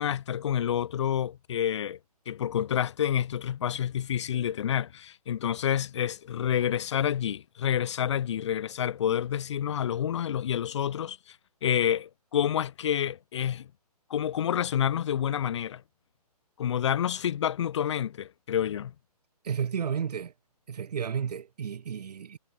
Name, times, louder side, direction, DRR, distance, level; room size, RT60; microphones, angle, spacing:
voice 1, 0.0-2.0 2.3-11.4 11.6-13.7 14.1-15.8 16.6-18.9, left 9 dB, 45° left, 0.8 m, -28 dB
voice 2, 19.4-20.3 20.7-22.4, right 7 dB, 80° right, 0.4 m, -32 dB
hypercardioid pair, 145°, 20 cm